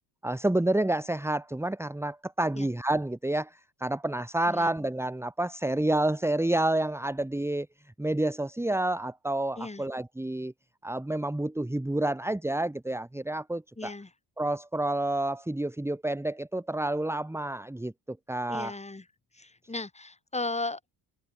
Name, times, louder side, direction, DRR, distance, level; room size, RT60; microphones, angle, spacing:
voice 1, 0.2-7.7 8.0-10.5 10.8-13.9 14.4-18.7, right 1 dB, 5° right, 1.9 m, -29 dB
voice 2, 13.8-14.1 18.5-19.0 19.3-20.9, left 2 dB, 15° left, 3.4 m, -36 dB
supercardioid pair, 80°, 40 cm